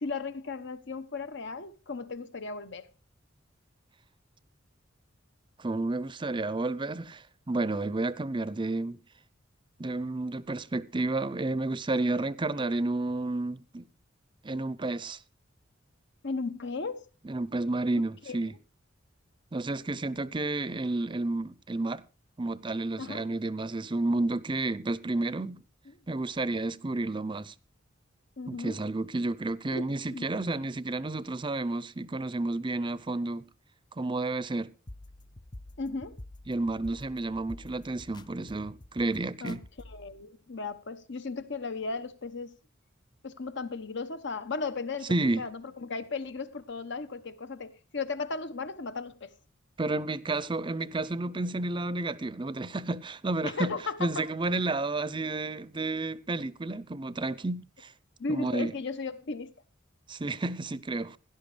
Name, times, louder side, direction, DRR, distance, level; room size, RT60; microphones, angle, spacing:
voice 1, 0.0-2.9 16.2-17.0 18.3-18.4 23.0-23.3 25.9-26.0 28.4-28.8 29.7-29.8 30.1-30.3 35.8-36.2 39.4-39.6 39.9-42.5 43.2-49.3 53.4-54.3 58.2-59.5, left 4 dB, 65° left, 1.1 m, -36 dB
voice 2, 5.6-9.0 9.8-13.9 14.4-15.2 17.2-18.5 19.5-22.0 22.4-25.6 26.1-27.5 28.5-33.4 34.0-34.7 36.5-39.6 45.1-45.4 49.8-57.9 58.3-58.7 60.1-61.2, right 2 dB, 25° right, 0.6 m, -31 dB
sound 1, 34.9-40.1, left 1 dB, 20° left, 0.6 m, -48 dB
17.0 x 11.5 x 3.3 m
head